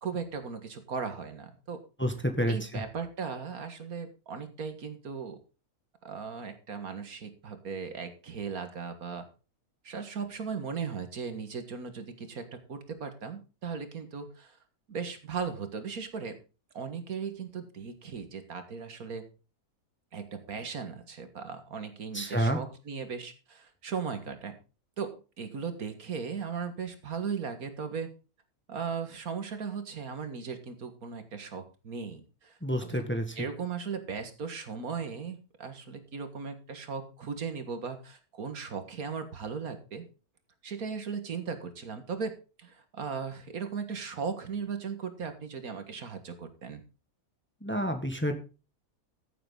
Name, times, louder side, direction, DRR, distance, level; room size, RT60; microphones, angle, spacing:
voice 1, 0.0-1.8 2.5-5.4 6.0-9.3 9.8-14.6 14.9-16.4 16.7-19.2 20.1-24.6 25.0-28.1 28.7-32.6 32.9-33.0 33.4-40.0 40.6-42.3 42.6-46.8, right 5 dB, 75° right, 8 dB, 2.1 m, -37 dB
voice 2, 2.0-2.6 22.1-22.6 32.6-33.5 47.6-48.4, equal, 10° left, 6 dB, 1.5 m, -29 dB
15.0 x 7.8 x 3.9 m, 0.33 s
omnidirectional pair, 1.6 m